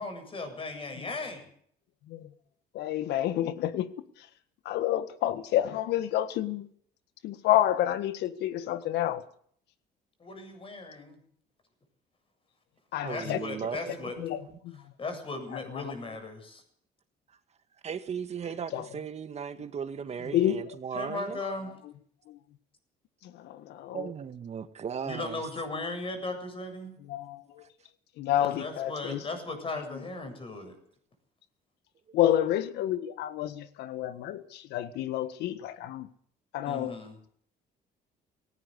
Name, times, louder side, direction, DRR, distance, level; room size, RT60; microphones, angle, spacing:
voice 1, 0.0-1.5 10.2-11.2 13.1-14.1 15.0-16.6 20.2-20.4 20.9-21.7 25.0-26.9 28.4-30.7 36.7-37.2, left 2 dB, 30° left, 7.7 m, -37 dB
voice 2, 2.7-3.9 4.2-4.3 4.6-6.7 7.2-9.2 12.9-13.4 14.2-14.8 15.5-15.9 18.7-18.9 20.3-20.6 22.3-22.4 23.2-24.1 27.0-27.6 28.2-29.2 29.9-30.0 32.1-36.1 36.5-37.0, left 12 dB, 80° left, 1.7 m, -29 dB
voice 3, 13.0-14.6 17.8-21.4 23.9-25.4 32.1-32.2, right 7 dB, 40° right, 1.8 m, -37 dB
18.5 x 18.0 x 8.2 m
cardioid pair, 110°, 17 cm